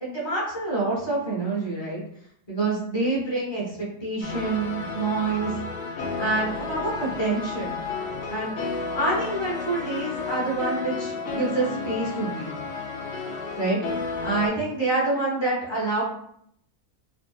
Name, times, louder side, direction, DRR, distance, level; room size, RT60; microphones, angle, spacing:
voice 1, 0.0-2.0 2.5-5.5 6.2-7.7 8.3-8.5 8.9-12.7 13.6-13.8 14.2-16.0, right 2 dB, 20° left, -6 dB, 0.8 m, -27 dB
sound 1, 4.2-14.5, left 4 dB, 70° left, 0.5 m, -32 dB
2.7 x 2.2 x 2.2 m, 0.70 s
omnidirectional pair, 1.6 m